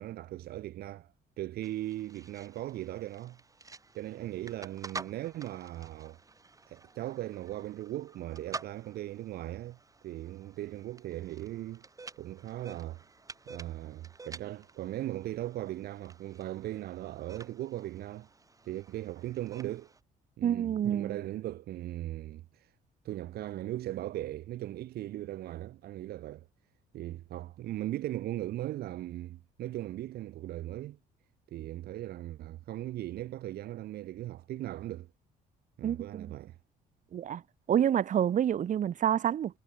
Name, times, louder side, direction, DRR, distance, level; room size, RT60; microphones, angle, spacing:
voice 1, 0.0-3.4 3.9-6.2 6.7-9.8 10.0-11.8 12.2-13.0 13.5-18.3 18.6-19.9 20.4-22.7 23.0-26.5 26.9-31.0 31.5-35.1 35.8-36.6, right 14 dB, 65° right, 1.1 m, -38 dB
sound 1, 1.6-20.0, right 3 dB, 20° right, 4.7 m, -50 dB
voice 2, 20.4-21.3 35.8-36.3 37.1-37.4 37.7-39.6, right 9 dB, 50° right, 1.5 m, -28 dB
cardioid pair, 110°, 17 cm